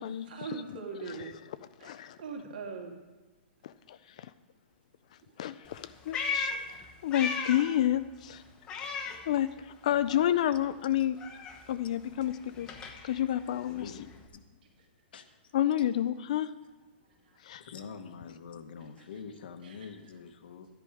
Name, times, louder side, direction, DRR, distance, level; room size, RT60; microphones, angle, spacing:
voice 1, 0.2-1.3 1.8-2.9 19.6-19.8, right 5 dB, 50° right, 2 dB, 2.4 m, -40 dB
voice 2, 1.8-2.2 3.6-4.3 5.4-6.5 7.0-8.4 9.3-11.2 11.7-12.7 13.0-13.8 15.5-16.5 17.4-17.6, left 11 dB, 35° left, 13 dB, 0.3 m, -29 dB
Meow, 5.7-7.8 8.1-9.8 10.1-14.3, left 5 dB, 15° left, 0.9 m, -38 dB
voice 3, 15.1-15.5 17.6-20.7, left 6 dB, 55° left, 8 dB, 1.1 m, -45 dB
12.0 x 10.5 x 4.9 m, 1.2 s
hypercardioid pair, 175°, 6 cm